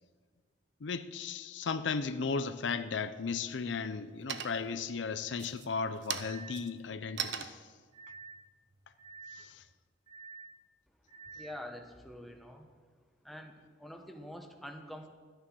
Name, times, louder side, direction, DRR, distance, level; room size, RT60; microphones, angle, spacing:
voice 1, 0.8-7.6 9.3-9.6, left 5 dB, 75° left, 0.6 m, -35 dB
sound 1, 2.7-3.2 3.6-4.0 4.3-4.9 5.3-9.7, right 8 dB, 70° right, 0.8 m, -41 dB
sound 2, 6.1-6.7 7.9-8.5 9.0-9.5 10.1-10.6 11.1-11.6, right 4 dB, 25° right, 1.3 m, -49 dB
voice 2, 11.3-12.7 13.2-15.1, equal, ahead, 1.1 m, -46 dB
12.5 x 10.0 x 6.2 m
head